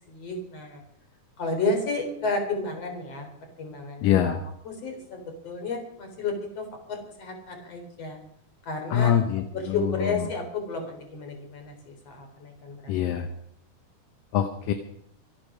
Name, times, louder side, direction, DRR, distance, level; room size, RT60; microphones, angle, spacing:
voice 1, 0.1-0.8 1.4-3.3 3.6-4.4 4.6-8.2 8.7-9.1 9.5-13.1, left 3 dB, 45° left, 4 dB, 4.7 m, -32 dB
voice 2, 4.0-4.4 8.9-10.1 12.9-13.3 14.3-14.7, left 10 dB, 75° left, 7 dB, 2.5 m, -24 dB
24.5 x 8.8 x 6.3 m, 0.70 s
omnidirectional pair, 4.3 m